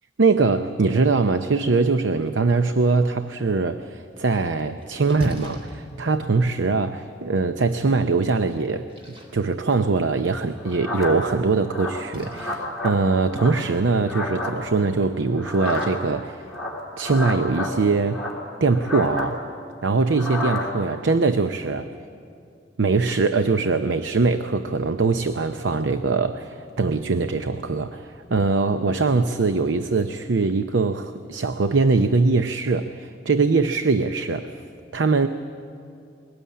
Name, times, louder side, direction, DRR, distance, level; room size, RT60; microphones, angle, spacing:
voice 1, 0.2-8.9 9.3-16.5 17.0-18.2 18.6-19.4 19.8-21.9 22.8-34.5 34.9-35.3, right 3 dB, 80° right, 9 dB, 0.7 m, -22 dB
Splash splatter, 4.4-17.1, equal, 30° right, 3.2 m, -43 dB
sound 1, 10.6-11.3 11.7-13.0 13.3-14.5 15.4-16.1 16.5-17.7 18.1-19.3 20.1-20.7, left 2 dB, ahead, 3.2 m, -30 dB
22.5 x 18.5 x 8.6 m, 2.4 s
head